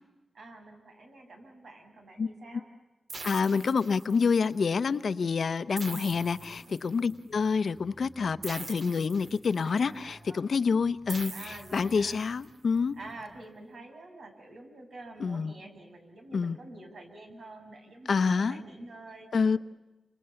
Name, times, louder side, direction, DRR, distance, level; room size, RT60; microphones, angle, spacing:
voice 1, 0.3-2.7 6.6-7.0 9.6-10.7 11.3-12.2 13.0-19.3, right 2 dB, 70° right, 4 dB, 6.8 m, -48 dB
sound 1, 3.1-4.4 5.8-7.1 8.4-9.8 11.1-12.4, right 3 dB, 55° right, 2.3 m, -43 dB
voice 2, 3.2-13.0 15.2-15.5 16.3-16.6 18.1-18.6 19.3-19.6, left 5 dB, 65° left, 13 dB, 0.9 m, -27 dB
sound 2, 6.1-13.5, equal, 30° right, 5.3 m, -56 dB
29.5 x 26.5 x 7.1 m, 1.1 s
wide cardioid pair, 130°, 0 cm